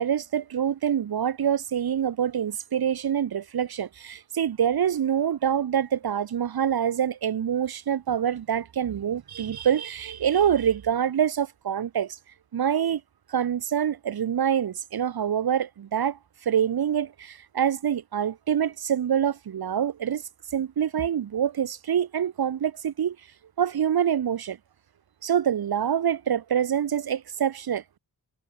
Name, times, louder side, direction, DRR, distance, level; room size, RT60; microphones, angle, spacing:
voice 1, 0.0-12.2 12.5-13.0 13.3-20.2 20.5-23.2 23.6-24.6 25.2-28.0, right 9 dB, 65° right, 0.7 m, -26 dB
wide cardioid pair, 75°, 40 cm